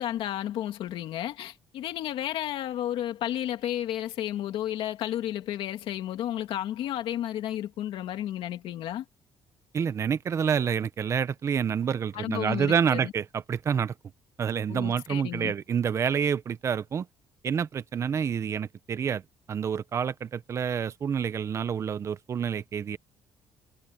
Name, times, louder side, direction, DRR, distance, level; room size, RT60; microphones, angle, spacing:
voice 1, 0.0-9.0 12.1-13.1 14.7-15.5, left 12 dB, 70° left, 2.6 m, -32 dB
voice 2, 9.7-13.9 14.4-17.1 17.4-19.2 19.5-23.0, right 7 dB, 30° right, 0.7 m, -28 dB
cardioid pair, 175°, 9 cm